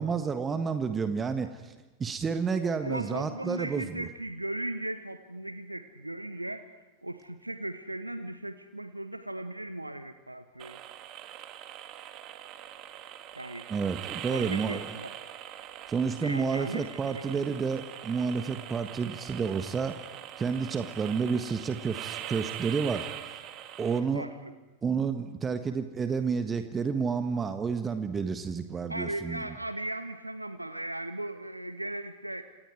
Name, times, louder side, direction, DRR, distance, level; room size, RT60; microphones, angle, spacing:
voice 1, 0.0-1.7 2.0-4.1 13.7-14.9 15.9-20.0 20.4-23.1 23.8-24.2 24.8-29.4, right 5 dB, 20° right, 8 dB, 1.4 m, -30 dB
voice 2, 2.8-6.7 7.0-10.8 13.4-13.7 14.3-15.1 16.2-17.5 24.0-24.5 28.9-32.4, right 1 dB, 85° right, 10 dB, 1.0 m, -37 dB
sound 1, 10.6-24.0, right 11 dB, 35° right, 2.0 m, -42 dB
29.5 x 27.0 x 4.8 m, 1.1 s
figure-of-eight pair, 90°, 0 cm